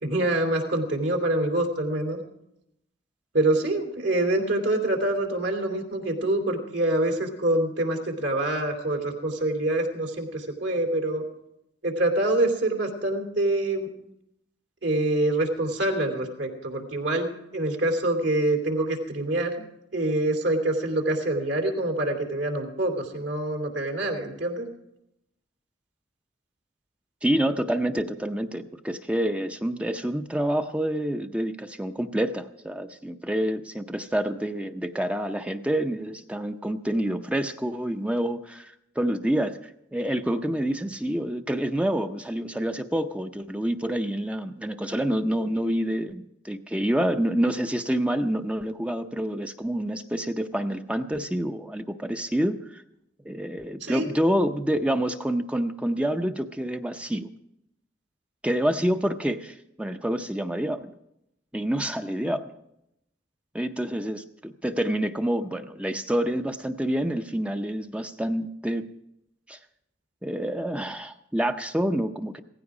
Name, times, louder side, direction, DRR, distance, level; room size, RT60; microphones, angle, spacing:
voice 1, 0.0-2.2 3.3-11.2 11.8-13.9 14.8-19.6 19.9-24.7 53.8-54.1, right 1 dB, 70° right, 3 dB, 3.0 m, -26 dB
voice 2, 27.2-39.6 39.9-52.8 53.2-57.3 58.4-60.9 61.5-62.5 63.5-68.9 69.5-69.6 70.2-72.4, right 1 dB, 5° right, 7 dB, 0.6 m, -27 dB
17.0 x 15.0 x 4.9 m, 0.81 s
head